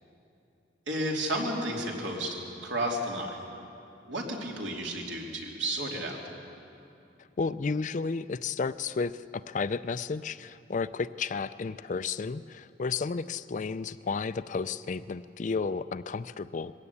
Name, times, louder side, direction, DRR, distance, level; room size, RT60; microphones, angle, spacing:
voice 1, 0.9-2.4 2.6-3.4 4.1-6.2, right 1 dB, 75° right, -1 dB, 3.1 m, -32 dB
voice 2, 7.4-16.7, left 4 dB, 40° left, 14 dB, 0.4 m, -32 dB
20.5 x 16.5 x 8.5 m, 2.7 s
head